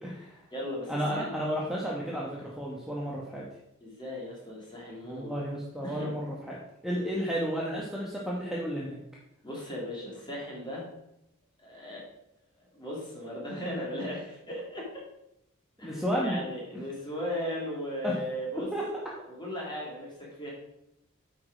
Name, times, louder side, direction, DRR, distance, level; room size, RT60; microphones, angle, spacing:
voice 1, 0.0-0.4 0.9-3.4 5.0-9.0 15.8-16.4 18.0-18.1 18.7-18.8, equal, ahead, -5 dB, 1.0 m, -32 dB
voice 2, 0.5-1.3 3.8-5.4 5.8-6.2 9.4-10.9 11.6-12.1 12.7-14.9 15.8-18.7 19.3-20.5, left 1 dB, 20° left, -4 dB, 2.6 m, -37 dB
8.2 x 5.0 x 4.9 m, 0.82 s
head